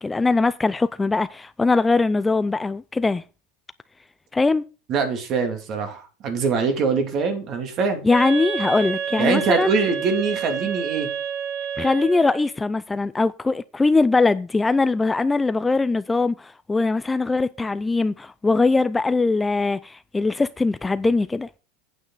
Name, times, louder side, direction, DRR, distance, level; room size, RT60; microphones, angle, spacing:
voice 1, 0.0-3.2 4.3-4.6 8.0-9.7 11.8-21.5, left 3 dB, 10° left, 0.4 m, -21 dB
voice 2, 4.9-8.1 9.2-11.1, right 5 dB, 40° right, 2.8 m, -23 dB
Wind instrument woodwind instrument, 8.1-12.5, right 7 dB, 65° right, 6.8 m, -29 dB
9.1 x 8.9 x 4.0 m
supercardioid pair, 140°, 0 cm